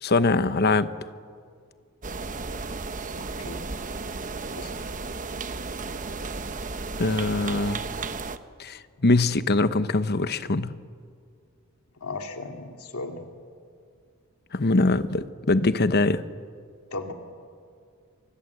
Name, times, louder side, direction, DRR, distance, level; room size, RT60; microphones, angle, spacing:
voice 1, 0.0-0.9 7.0-7.8 8.6-10.7 14.5-16.2, left 2 dB, 45° left, 12 dB, 1.0 m, -23 dB
sound 1, 2.0-8.4, right 3 dB, 35° right, 1.0 m, -34 dB
voice 2, 3.2-3.7 4.6-4.7 12.0-13.2 16.9-17.1, left 3 dB, 80° left, 4 dB, 2.4 m, -36 dB
29.0 x 25.0 x 8.2 m, 2.2 s
head